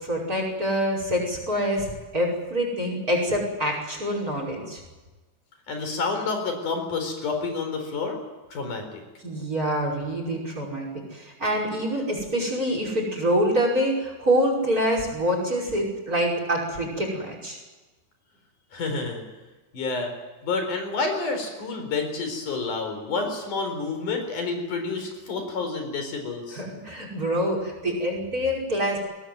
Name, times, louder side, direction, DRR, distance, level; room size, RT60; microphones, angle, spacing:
voice 1, 0.0-4.8 9.2-17.6 26.5-29.0, equal, 25° right, 1 dB, 5.9 m, -26 dB
voice 2, 5.7-8.2 8.5-9.0 18.7-19.2 19.7-20.1 20.4-26.6, left 4 dB, 75° left, 5 dB, 5.8 m, -29 dB
22.5 x 18.5 x 9.5 m, 1.2 s
omnidirectional pair, 3.7 m